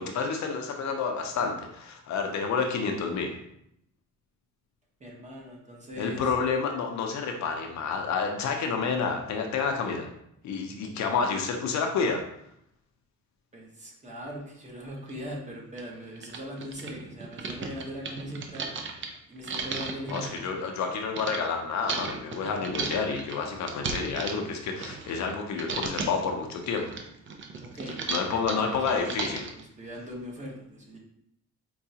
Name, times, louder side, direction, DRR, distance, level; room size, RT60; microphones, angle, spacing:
voice 1, 0.0-3.3 6.0-10.1 10.4-12.2 20.1-26.9 28.1-29.4, left 5 dB, 65° left, 3 dB, 0.6 m, -29 dB
voice 2, 5.0-6.3 13.5-18.8 19.3-20.4 27.6-29.1 29.5-31.0, equal, 25° right, -2 dB, 1.0 m, -40 dB
sound 1, 15.1-15.2 15.8-15.9 16.2-21.4 21.9-25.3 25.6-26.3 26.6-29.6, right 4 dB, 40° right, 0.5 m, -35 dB
4.6 x 2.3 x 2.7 m, 0.74 s
cardioid pair, 100°, 30 cm